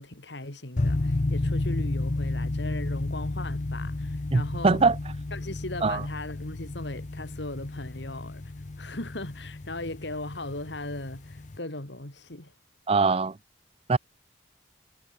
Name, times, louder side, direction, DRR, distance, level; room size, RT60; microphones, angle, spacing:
voice 1, 0.0-4.8 5.3-8.4 8.8-12.5, left 2 dB, 70° left, 3.2 m, -38 dB
sound 1, 0.8-11.6, left 2 dB, 40° left, 0.7 m, -32 dB
voice 2, 4.3-5.0 5.8-6.0 12.9-13.4 13.9-14.0, right 4 dB, 30° right, 0.5 m, -22 dB
head